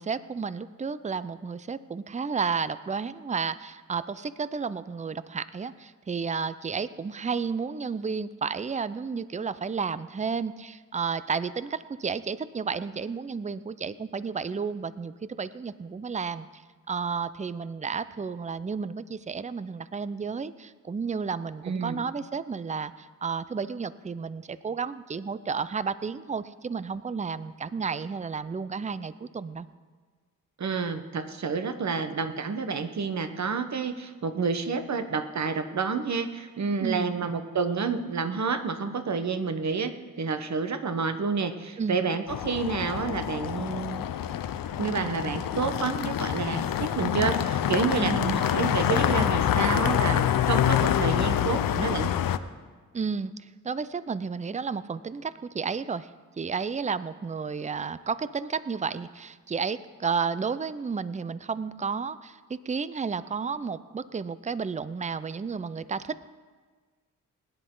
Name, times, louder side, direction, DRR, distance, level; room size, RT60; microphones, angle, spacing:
voice 1, 0.0-16.5 16.9-29.7 36.8-37.2 41.8-42.1 48.0-48.5 52.9-53.3 53.6-56.1 56.4-66.3, right 5 dB, 20° right, 15 dB, 0.5 m, -32 dB
voice 2, 21.6-22.0 30.6-44.1 44.8-52.1, right 5 dB, 55° right, 9 dB, 1.2 m, -29 dB
sound 1, 42.3-52.4, left 10 dB, 85° left, 0.6 m, -26 dB
21.0 x 10.5 x 3.9 m, 1.5 s
cardioid pair, 65°, 33 cm